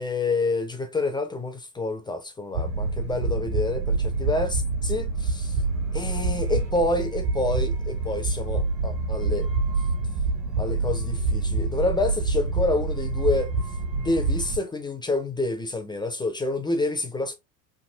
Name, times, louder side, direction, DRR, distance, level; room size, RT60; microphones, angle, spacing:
voice 1, 0.0-5.6 5.9-9.5 10.6-13.5 13.9-17.3, left 2 dB, 10° left, 0.4 m, -28 dB
sound 1, 2.5-14.6, right 3 dB, 85° right, 1.7 m, -26 dB
3.4 x 2.6 x 2.6 m
hypercardioid pair, 80°, 49 cm